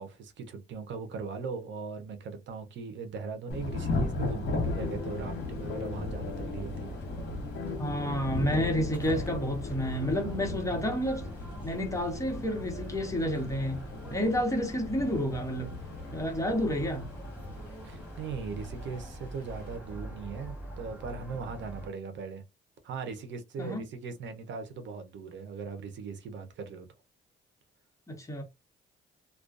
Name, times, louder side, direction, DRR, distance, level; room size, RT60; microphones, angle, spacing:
voice 1, 0.0-7.0 17.8-22.4 22.8-26.9, right 5 dB, 70° right, 0.7 m, -39 dB
Thunder / Rain, 3.5-19.8, left 2 dB, 60° left, 1.0 m, -37 dB
sound 1, 4.6-21.9, right 1 dB, 5° right, 1.6 m, -45 dB
sound 2, 4.7-10.4, left 7 dB, 85° left, 0.5 m, -42 dB
voice 2, 7.8-11.2 11.6-13.8 14.1-15.8 16.1-17.1 23.6-23.8 28.1-28.4, equal, 15° left, 1.0 m, -30 dB
2.4 x 2.2 x 2.4 m
cardioid pair, 90°, 20 cm